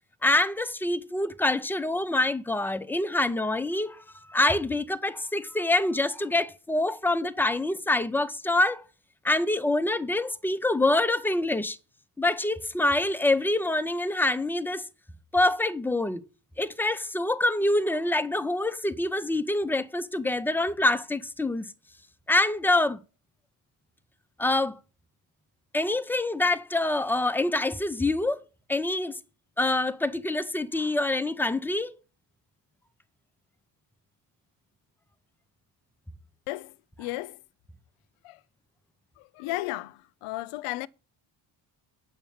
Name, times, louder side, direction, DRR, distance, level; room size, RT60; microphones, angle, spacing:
voice 1, 0.2-4.0 4.3-8.8 9.2-11.8 12.2-14.8 15.3-16.2 16.6-21.7 22.3-23.0 24.4-24.8 25.7-28.4 28.7-29.2 29.6-31.9, left 2 dB, 5° left, 0.4 m, -26 dB
voice 2, 37.0-37.4 38.2-38.4 39.4-40.9, left 18 dB, 90° left, 0.7 m, -33 dB
8.1 x 5.8 x 7.1 m
cardioid pair, 130°, 49 cm